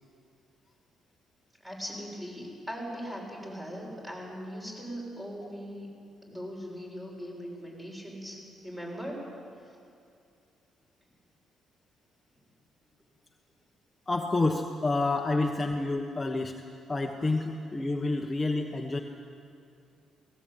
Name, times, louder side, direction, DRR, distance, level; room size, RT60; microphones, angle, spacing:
voice 1, 1.6-5.9 6.3-9.3 17.2-17.3, equal, 15° right, -2 dB, 7.1 m, -40 dB
voice 2, 14.1-16.6 16.9-19.0, left 2 dB, 20° left, 2 dB, 1.2 m, -28 dB
18.0 x 18.0 x 8.7 m, 2.5 s
cardioid pair, 90°, 0 cm